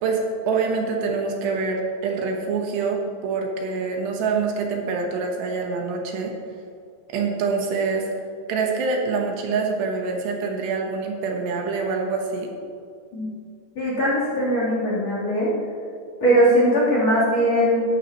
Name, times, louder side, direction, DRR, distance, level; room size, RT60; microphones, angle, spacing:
voice 1, 0.0-6.4 7.1-8.1 8.5-12.5, right 4 dB, 80° right, 1 dB, 3.2 m, -25 dB
voice 2, 13.8-15.5 16.2-17.8, equal, 40° left, -7 dB, 4.1 m, -20 dB
14.5 x 12.0 x 3.0 m, 2.4 s
omnidirectional pair, 5.0 m